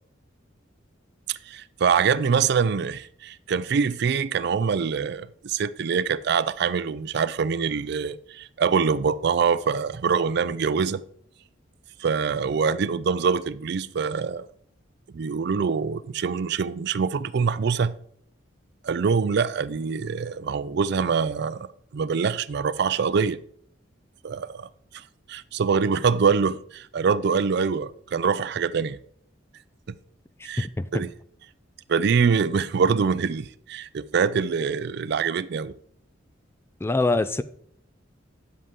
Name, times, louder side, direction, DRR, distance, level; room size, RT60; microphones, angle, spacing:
voice 1, 1.3-11.0 12.0-14.5 15.1-18.0 18.8-21.7 21.9-23.4 24.2-24.7 25.3-29.0 30.4-30.7 30.9-31.1 31.9-35.7, right 6 dB, 60° right, 0.4 m, -24 dB
voice 2, 30.6-31.0 36.8-37.4, left 2 dB, 15° left, 0.3 m, -24 dB
9.6 x 7.7 x 3.7 m
head